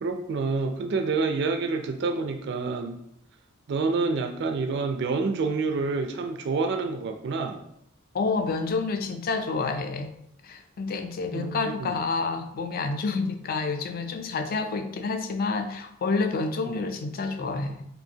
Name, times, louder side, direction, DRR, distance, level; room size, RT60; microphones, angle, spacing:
voice 1, 0.0-3.0 3.7-7.6 11.3-12.0 16.7-16.9, right 4 dB, 55° right, 5 dB, 0.4 m, -28 dB
voice 2, 8.1-10.1 10.4-17.9, left 4 dB, 45° left, 7 dB, 0.4 m, -29 dB
5.4 x 2.6 x 2.7 m, 0.74 s
head